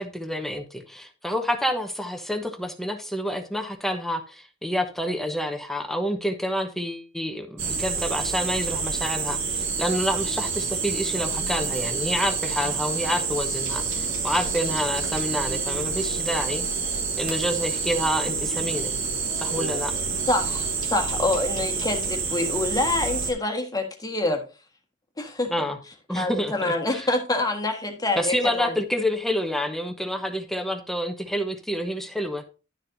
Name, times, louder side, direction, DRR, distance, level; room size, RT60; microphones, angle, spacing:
voice 1, 0.0-16.7 17.2-18.9 19.4-19.9 25.5-25.8 26.1-27.1 28.2-32.4, equal, ahead, 1.1 m, -28 dB
sound 1, 7.6-23.3, right 5 dB, 85° right, 2.6 m, -28 dB
voice 2, 20.3-24.4 25.2-25.5 26.1-28.7, left 2 dB, 20° left, 1.6 m, -26 dB
11.5 x 7.4 x 2.7 m
head